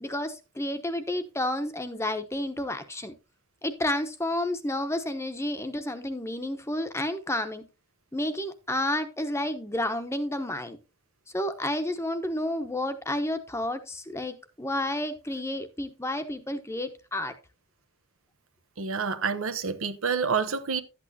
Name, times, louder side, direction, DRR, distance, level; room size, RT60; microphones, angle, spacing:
voice 1, 0.0-3.1 3.6-7.6 8.1-10.8 11.3-17.3, left 1 dB, 15° left, 0.9 m, -30 dB
voice 2, 18.8-20.8, right 5 dB, 85° right, 0.9 m, -28 dB
11.5 x 8.6 x 2.7 m
head